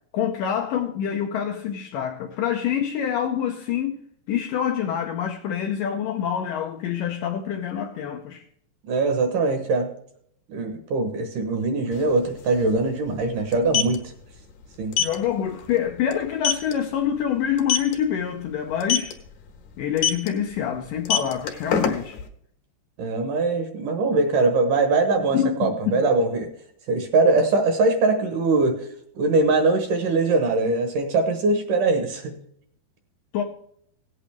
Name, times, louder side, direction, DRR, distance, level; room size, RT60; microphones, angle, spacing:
voice 1, 0.1-4.0 4.3-8.4 15.0-19.2 19.8-22.2 25.3-26.0 33.3-33.4, left 9 dB, 80° left, 2.0 m, -26 dB
voice 2, 8.8-9.9 10.5-14.1 14.8-14.9 23.0-26.5 26.9-28.9 29.2-32.4, right 3 dB, 65° right, 2.3 m, -22 dB
sound 1, 11.9-12.0 12.3-12.4 13.5-14.0 14.9-15.2 15.6-15.8 16.1-16.2 16.4-16.7 17.6-17.9 18.8-19.1 20.0-20.3 20.9-22.2, left 8 dB, 65° left, 2.7 m, -22 dB
17.0 x 8.6 x 3.4 m
omnidirectional pair, 4.7 m